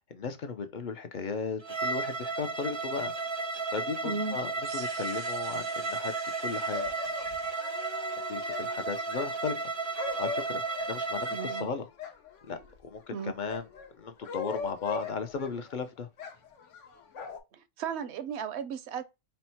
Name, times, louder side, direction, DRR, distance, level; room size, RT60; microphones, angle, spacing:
voice 1, 0.1-3.5 3.7-7.0 8.3-9.6 9.9-10.6 10.9-11.9 12.5-13.7 14.0-16.1, left 5 dB, 55° left, 0.6 m, -36 dB
Bowed string instrument, 1.6-11.7, right 3 dB, 35° right, 0.4 m, -33 dB
voice 2, 4.0-4.4 11.3-11.7 13.1-13.3 17.5-19.0, right 5 dB, 70° right, 0.8 m, -35 dB
sound 1, 4.6-9.5, right 4 dB, 90° right, 1.4 m, -50 dB
sound 2, 6.7-12.7 13.2-15.7 16.2-17.4, left 4 dB, 85° left, 1.1 m, -40 dB
4.3 x 2.1 x 4.2 m
omnidirectional pair, 1.2 m